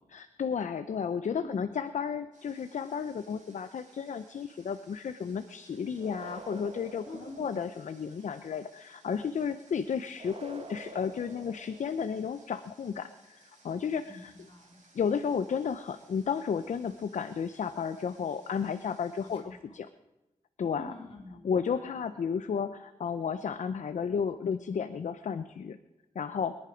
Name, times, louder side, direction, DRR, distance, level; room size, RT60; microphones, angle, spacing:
voice 1, 0.1-14.3 14.9-19.9 20.6-20.9 21.4-25.8 26.1-26.6, left 6 dB, 65° left, 10 dB, 0.6 m, -33 dB
Water, 2.3-19.4, right 2 dB, 80° right, 6.0 m, -62 dB
sound 1, 6.0-8.0 10.1-12.2, right 3 dB, 45° right, 1.2 m, -48 dB
voice 2, 7.0-7.5 14.1-14.8 19.2-19.8 20.8-22.1, left 1 dB, 45° left, -3 dB, 4.2 m, -47 dB
22.0 x 10.5 x 5.0 m, 1.0 s
wide cardioid pair, 105°, 13 cm